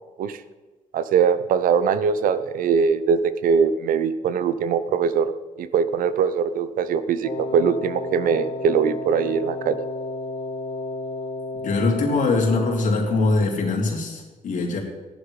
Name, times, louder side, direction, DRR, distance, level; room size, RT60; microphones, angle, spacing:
voice 1, 0.9-5.3 5.6-9.8, right 6 dB, 90° right, 13 dB, 0.8 m, -21 dB
Wind instrument woodwind instrument, 7.2-13.0, left 2 dB, 40° left, 1.3 m, -32 dB
voice 2, 11.6-14.8, left 3 dB, 65° left, 0 dB, 3.2 m, -22 dB
15.0 x 11.0 x 4.9 m, 1.3 s
cardioid pair, 125°, 14 cm